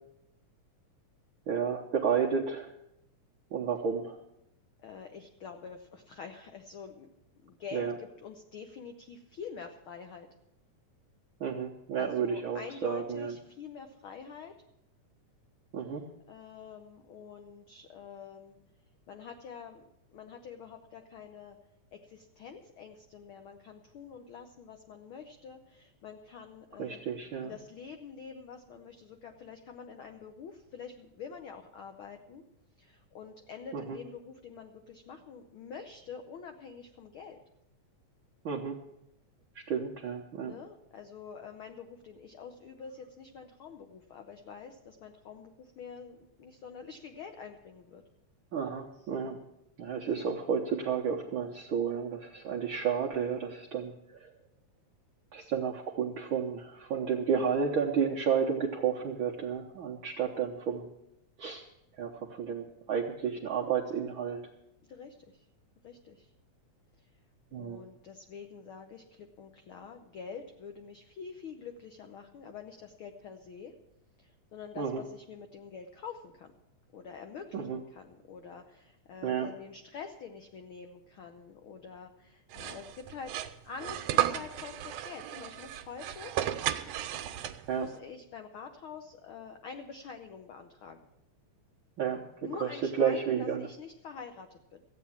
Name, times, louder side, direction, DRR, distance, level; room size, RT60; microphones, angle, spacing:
voice 1, 1.5-2.7 3.5-4.2 7.7-7.9 11.4-13.3 15.7-16.0 26.8-27.5 33.7-34.0 38.4-38.8 39.5-40.5 48.5-49.4 49.8-53.9 54.2-54.3 55.3-60.8 61.4-61.6 62.0-64.4 67.5-67.8 74.8-75.0 77.5-77.8 79.2-79.5 87.7-87.8 92.0-92.2 92.6-92.7 93.0-93.7, right 7 dB, 70° right, -1 dB, 1.2 m, -31 dB
voice 2, 4.8-7.1 7.4-10.3 12.0-14.5 15.8-15.9 16.3-18.6 19.1-19.8 20.1-21.6 21.9-27.0 27.4-32.4 32.8-37.4 40.4-48.0 64.9-65.4 65.8-66.3 67.0-67.1 67.6-73.7 74.2-76.5 76.9-86.3 87.4-91.0 92.4-94.8, left 6 dB, 80° left, 6 dB, 1.1 m, -46 dB
sound 1, 82.5-87.9, right 12 dB, 85° right, 2.1 m, -34 dB
14.5 x 8.7 x 7.2 m, 0.81 s
omnidirectional pair, 3.5 m